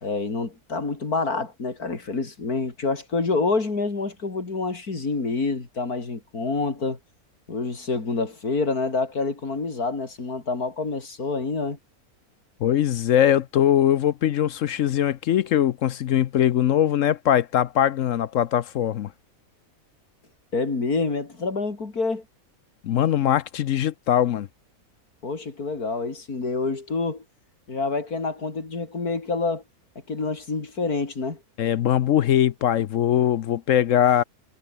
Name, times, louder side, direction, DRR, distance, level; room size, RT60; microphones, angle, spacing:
voice 1, 0.0-7.0 7.5-11.8 20.5-22.2 25.2-27.2 27.7-29.6 30.1-31.4, left 3 dB, 85° left, 4.1 m, -27 dB
voice 2, 12.6-19.1 22.8-24.5 31.6-34.2, left 10 dB, 65° left, 1.0 m, -21 dB
omnidirectional pair, 1.6 m